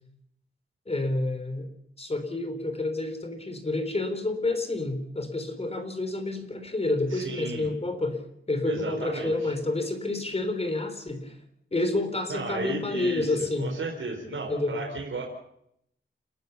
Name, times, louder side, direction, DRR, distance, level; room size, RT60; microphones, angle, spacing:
voice 1, 0.9-1.7 2.0-11.4 11.7-13.7 14.5-14.7, left 2 dB, 30° left, 7 dB, 3.7 m, -29 dB
voice 2, 7.1-7.7 8.7-9.5 12.3-15.2, right 3 dB, 70° right, 0 dB, 4.6 m, -34 dB
30.0 x 14.5 x 7.0 m, 0.75 s
wide cardioid pair, 130°, 21 cm